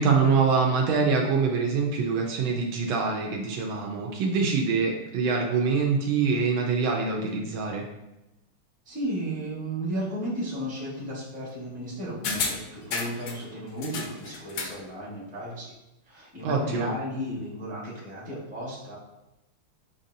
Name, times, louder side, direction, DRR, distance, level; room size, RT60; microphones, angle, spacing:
voice 1, 0.0-7.8 16.4-16.9, right 5 dB, 75° right, 1 dB, 1.3 m, -24 dB
voice 2, 8.8-15.7 16.1-19.0, equal, 5° right, -7 dB, 0.7 m, -34 dB
sound 1, 12.2-13.4 13.8-14.8 15.1-15.2, left 5 dB, 70° left, 1.2 m, -32 dB
6.6 x 2.7 x 2.6 m, 0.94 s
omnidirectional pair, 2.4 m